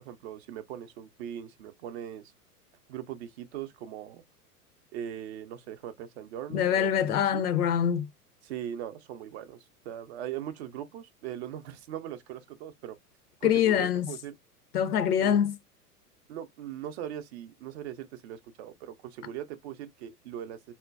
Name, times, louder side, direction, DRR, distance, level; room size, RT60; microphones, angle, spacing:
voice 1, 0.0-2.3 2.9-4.2 4.9-7.4 8.4-13.0 13.4-14.3 15.2-15.4 16.3-20.7, right 10 dB, 45° right, 0.5 m, -40 dB
voice 2, 6.5-8.1 13.4-14.1 14.7-15.6, left 9 dB, 70° left, 0.7 m, -24 dB
3.7 x 2.1 x 2.3 m
figure-of-eight pair, 95°, 48 cm